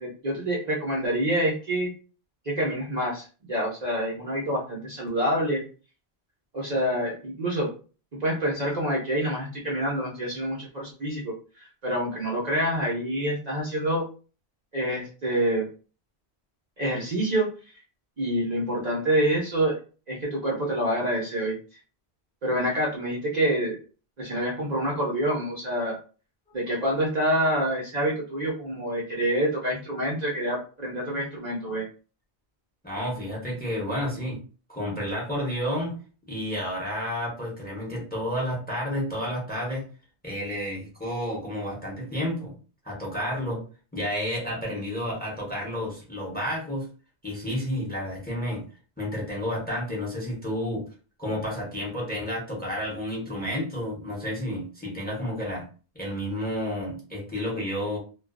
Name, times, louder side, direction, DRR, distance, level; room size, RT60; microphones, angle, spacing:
voice 1, 0.0-1.9 2.5-5.6 6.5-7.7 8.2-14.1 14.7-15.7 16.8-17.5 18.2-19.7 20.1-21.5 22.4-23.8 24.2-26.0 26.5-31.8, right 1 dB, 45° right, -4 dB, 0.7 m, -27 dB
voice 2, 32.8-34.4 34.7-36.0 36.3-39.8 40.2-42.5 42.8-43.6 43.9-46.9 47.2-48.6 49.0-50.8 51.2-55.7 55.9-58.0, equal, 10° left, -3 dB, 0.8 m, -31 dB
2.3 x 2.2 x 2.3 m, 0.36 s
omnidirectional pair, 1.1 m